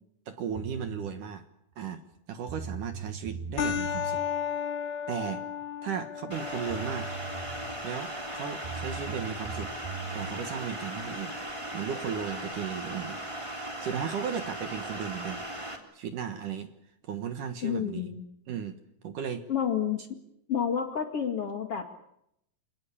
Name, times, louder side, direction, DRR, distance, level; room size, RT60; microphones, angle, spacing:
voice 1, 0.3-1.4 1.8-2.0 2.3-4.2 5.1-5.4 5.8-7.1 7.8-9.7 10.1-13.2 13.8-15.4 15.9-16.7 17.0-18.1 18.5-18.8 19.0-19.5, right 7 dB, 60° right, 8 dB, 2.6 m, -35 dB
sound 1, 0.6-1.1 2.1-2.2 2.5-4.2 6.3-6.4 6.7-7.9 8.6-10.3, right 6 dB, 85° right, 5.0 m, -40 dB
sound 2, 3.6-12.6, left 8 dB, 75° left, 4.5 m, -37 dB
sound 3, 6.3-15.8, right 1 dB, 10° right, 3.0 m, -38 dB
voice 2, 17.6-18.2 19.5-20.0 20.5-22.0, left 8 dB, 45° left, 5 dB, 2.5 m, -29 dB
28.0 x 19.0 x 8.6 m, 0.77 s
omnidirectional pair, 4.7 m